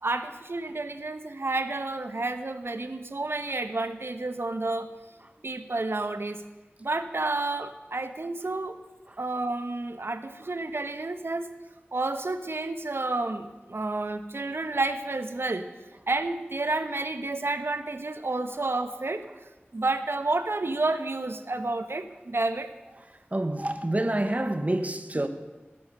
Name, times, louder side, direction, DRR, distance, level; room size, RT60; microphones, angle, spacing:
voice 1, 0.0-4.9 5.4-6.4 6.8-8.8 9.2-11.5 11.9-15.7 16.1-19.2 19.7-22.7, right 2 dB, 75° right, 1.2 m, -30 dB
voice 2, 23.3-25.3, right 1 dB, 35° right, 1.5 m, -27 dB
18.5 x 10.5 x 6.7 m
wide cardioid pair, 50°, 4 cm